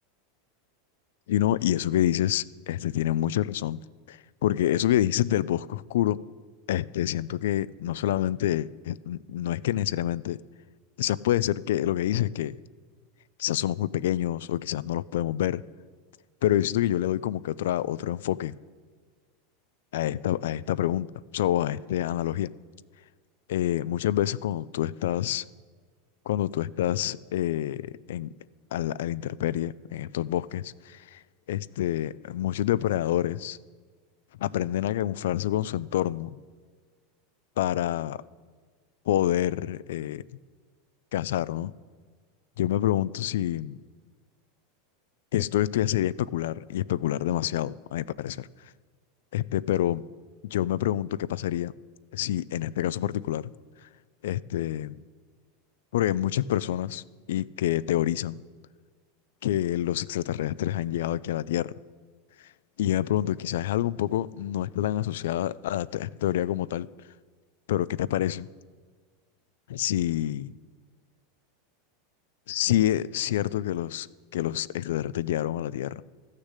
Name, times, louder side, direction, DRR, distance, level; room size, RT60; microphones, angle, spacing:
voice 1, 1.3-3.8 4.1-6.2 6.7-10.4 11.0-12.6 13.4-15.6 16.4-18.5 19.9-21.1 21.3-22.5 23.5-25.4 26.3-28.3 28.7-31.2 31.5-33.6 34.4-36.4 37.6-38.2 39.1-40.2 41.1-41.7 42.6-43.8 45.3-48.5 49.3-50.0 50.5-51.7 52.1-53.5 54.2-54.9 55.9-57.0 57.3-58.4 59.4-61.7 62.8-66.9 67.7-68.5 69.7-70.5 72.5-74.1 74.3-76.0, left 12 dB, 80° left, 19 dB, 0.3 m, -27 dB
13.5 x 6.5 x 8.2 m, 1.5 s
supercardioid pair, 140°, 0 cm